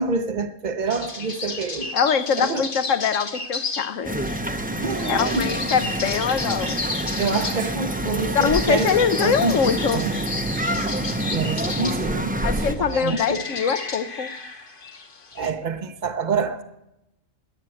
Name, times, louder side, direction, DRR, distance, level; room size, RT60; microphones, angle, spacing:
voice 1, 0.0-1.9 2.4-2.6 4.8-5.5 7.2-8.9 9.2-10.1 11.3-12.3 12.6-13.4 15.3-16.6, right 4 dB, 40° right, 0.8 m, -26 dB
sound 1, 0.9-15.5, left 3 dB, 40° left, 1.4 m, -33 dB
voice 2, 1.9-4.1 5.0-6.8 8.3-10.0 12.4-14.3, left 7 dB, 70° left, 1.2 m, -23 dB
sound 2, 4.0-12.7, right 1 dB, 10° right, 0.7 m, -27 dB
20.0 x 9.1 x 7.8 m
omnidirectional pair, 1.4 m